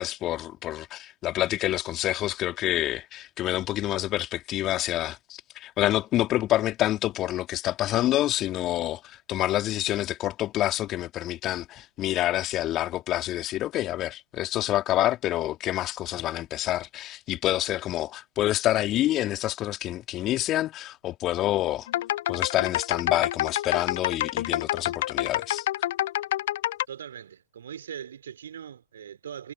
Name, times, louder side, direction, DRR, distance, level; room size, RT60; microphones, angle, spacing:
voice 1, 0.0-21.9 22.3-25.7, left 14 dB, 35° left, 2.8 m, -27 dB
sound 1, 21.9-26.9, left 14 dB, 55° left, 1.1 m, -28 dB
voice 2, 26.9-29.5, right 9 dB, 65° right, 4.7 m, -40 dB
figure-of-eight pair, 90°, 0 cm